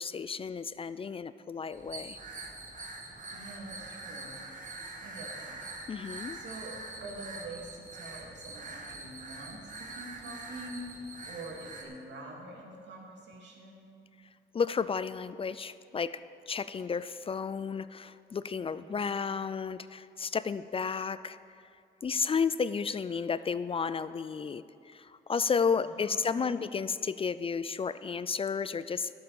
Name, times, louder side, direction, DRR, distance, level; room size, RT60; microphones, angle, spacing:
voice 1, 0.0-2.2 5.9-6.4 14.5-16.2 16.5-21.4 22.0-29.1, left 5 dB, 30° left, 15 dB, 0.3 m, -32 dB
sound 1, 1.7-11.8, right 3 dB, 40° right, 1.8 m, -44 dB
voice 2, 3.3-4.4 5.0-5.6 6.3-6.7 7.0-11.0 11.2-13.9 18.7-19.0 25.7-26.6, right 2 dB, 65° right, -1 dB, 2.8 m, -46 dB
11.5 x 8.5 x 6.9 m, 2.4 s
cardioid pair, 90°, 20 cm